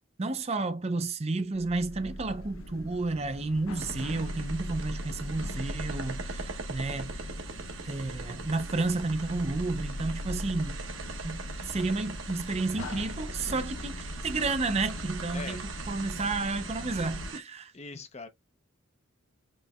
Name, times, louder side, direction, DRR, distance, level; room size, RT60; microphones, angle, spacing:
voice 1, 0.2-7.2 7.8-10.8 11.2-17.7, right 3 dB, 30° right, 0.5 m, -31 dB
sound 1, 1.5-17.3, left 1 dB, 90° left, 0.8 m, -39 dB
sound 2, 3.8-17.4, right 5 dB, 70° right, 1.1 m, -42 dB
voice 2, 15.3-15.6 17.7-18.3, left 4 dB, 35° left, 0.7 m, -42 dB
5.3 x 3.1 x 2.3 m
head